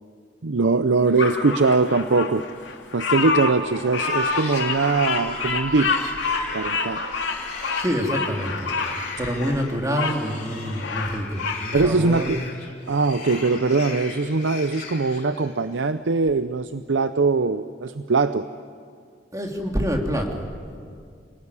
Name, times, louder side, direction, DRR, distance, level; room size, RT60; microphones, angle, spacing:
voice 1, 0.4-2.4 2.9-6.0 6.5-7.0 11.7-12.4 12.9-18.4, right 3 dB, 90° right, 11 dB, 0.7 m, -21 dB
Bird vocalization bird call bird song, 1.2-10.2 10.6-11.6, left 4 dB, 85° left, 2.9 m, -27 dB
sound 1, 3.7-15.7, left 4 dB, 40° left, 4.4 m, -38 dB
voice 2, 7.8-8.7 9.2-12.3 19.3-20.8, equal, 20° right, 1 dB, 3.1 m, -27 dB
29.0 x 19.5 x 9.8 m, 2.2 s
head